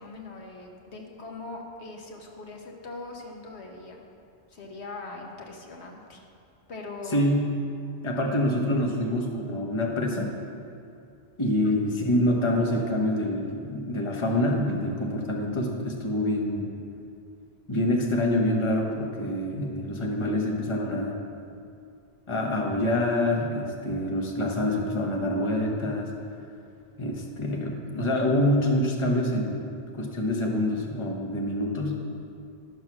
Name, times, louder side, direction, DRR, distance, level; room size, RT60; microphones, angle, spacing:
voice 1, 0.0-4.0 4.5-6.2 6.7-7.2, left 3 dB, 80° left, 1 dB, 1.4 m, -41 dB
voice 2, 7.1-7.5 8.0-10.3 11.4-16.7 17.7-21.2 22.3-26.1 27.0-29.6 29.9-32.0, left 1 dB, 30° left, 1 dB, 1.0 m, -26 dB
11.5 x 6.4 x 6.0 m, 2.5 s
omnidirectional pair, 1.1 m